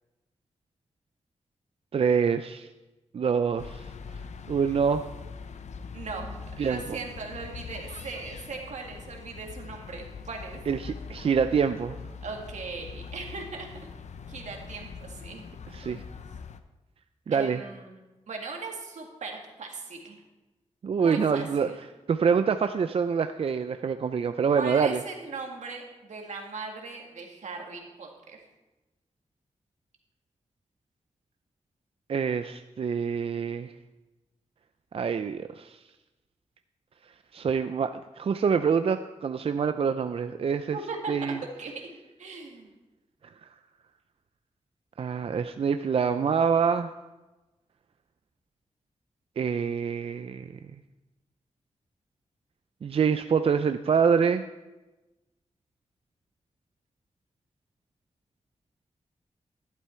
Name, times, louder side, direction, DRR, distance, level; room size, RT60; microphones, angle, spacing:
voice 1, 1.9-2.7 3.1-3.8 4.5-5.0 6.6-7.0 10.7-12.0 15.7-16.0 17.3-17.6 20.8-21.7 22.1-25.0 32.1-33.7 34.9-35.8 37.3-40.8 41.1-41.4 45.0-46.9 49.4-50.5 52.8-54.5, right 6 dB, 50° right, 9 dB, 0.4 m, -26 dB
sound 1, 3.6-16.6, left 5 dB, 75° left, 0.7 m, -42 dB
voice 2, 5.9-10.6 12.2-13.7 14.3-15.4 15.7-16.1 17.3-18.0 18.3-20.2 21.0-21.8 24.5-28.4 40.7-41.3 41.6-41.9 42.2-42.7, right 4 dB, 85° right, 1 dB, 2.1 m, -39 dB
11.5 x 11.5 x 4.4 m, 1.1 s
wide cardioid pair, 140°, 12 cm